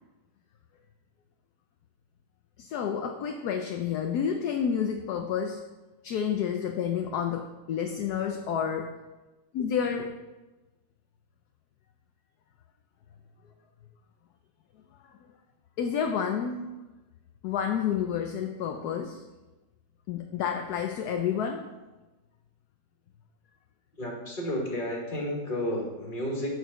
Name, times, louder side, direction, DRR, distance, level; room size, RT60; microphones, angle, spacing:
voice 1, 2.6-5.6 6.0-8.9 9.5-10.2 15.8-16.7 17.4-19.3 20.1-21.6, left 7 dB, 70° left, 5 dB, 1.1 m, -29 dB
voice 2, 24.0-26.5, left 1 dB, 30° left, -1 dB, 1.9 m, -32 dB
6.7 x 6.4 x 6.8 m, 1.1 s
omnidirectional pair, 2.0 m